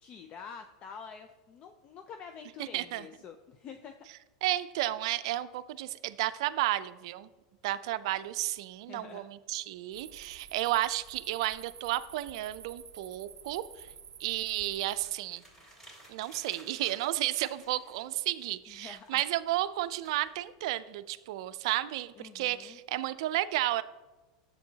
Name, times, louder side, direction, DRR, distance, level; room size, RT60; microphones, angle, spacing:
voice 1, 0.0-4.1 8.9-9.2 18.7-19.3 22.2-22.8, left 6 dB, 35° left, 7 dB, 0.4 m, -47 dB
voice 2, 2.7-3.1 4.4-7.3 7.6-13.9 14.2-15.4 16.1-23.8, right 15 dB, 70° right, 15 dB, 0.4 m, -32 dB
sound 1, 9.9-15.1, right 8 dB, 25° right, 0.6 m, -50 dB
sound 2, 14.6-18.1 18.4-20.6, right 1 dB, 15° left, 3.0 m, -56 dB
10.5 x 7.6 x 2.8 m, 1.2 s
supercardioid pair, 125°, 3 cm